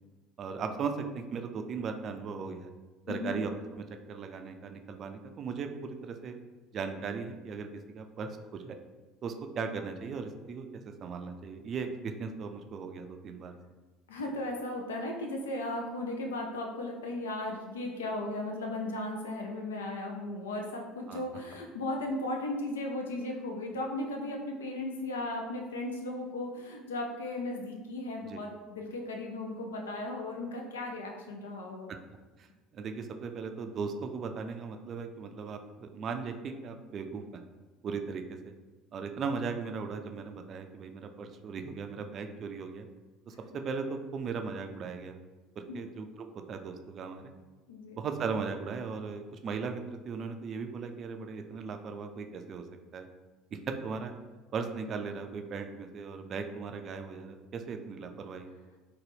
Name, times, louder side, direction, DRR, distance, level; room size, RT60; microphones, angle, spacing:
voice 1, 0.4-2.7 3.1-3.5 3.8-6.3 6.7-8.8 9.2-13.6 21.1-21.2 28.2-28.4 32.4-32.5 32.7-37.4 37.8-38.5 38.9-42.9 43.3-45.2 45.6-47.2 47.9-52.7 52.9-53.1 53.5-54.1 54.5-58.5, right 5 dB, 45° right, 6 dB, 0.3 m, -37 dB
voice 2, 3.1-3.4 14.1-31.9 45.7-45.8 47.7-48.0, left 2 dB, 80° left, 1 dB, 0.4 m, -36 dB
3.9 x 2.2 x 3.3 m, 1.3 s
figure-of-eight pair, 65°, 0 cm